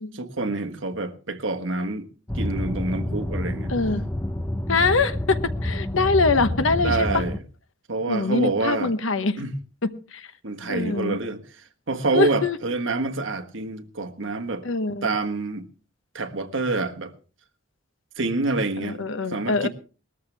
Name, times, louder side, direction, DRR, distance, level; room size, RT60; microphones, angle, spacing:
voice 1, 0.1-2.1 2.3-3.7 6.8-7.4 7.9-8.9 9.4-9.6 10.4-11.4 11.9-14.6 15.0-15.7 16.1-17.1 18.2-19.7, right 3 dB, 65° right, 1.5 m, -27 dB
sound 1, 2.3-7.4, left 1 dB, 10° left, 0.7 m, -28 dB
voice 2, 3.7-4.0 4.7-7.2 8.1-9.4 9.8-10.3 10.7-11.2 12.1-12.6 14.6-15.1 18.8-19.7, left 3 dB, 70° left, 1.0 m, -23 dB
20.0 x 13.5 x 3.4 m
head